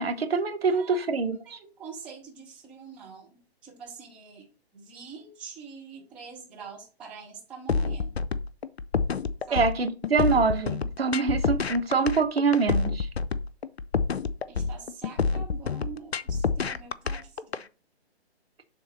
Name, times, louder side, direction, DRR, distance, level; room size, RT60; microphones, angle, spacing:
voice 1, 0.0-1.6 9.5-13.1, right 4 dB, 65° right, 1.2 m, -25 dB
voice 2, 0.6-1.1 1.5-4.5 4.7-8.2 9.5-9.6 14.5-17.6, right 6 dB, 5° right, 0.5 m, -45 dB
sound 1, 7.7-17.6, left 5 dB, 70° left, 0.6 m, -28 dB
6.8 x 3.6 x 5.3 m
figure-of-eight pair, 130°, 32 cm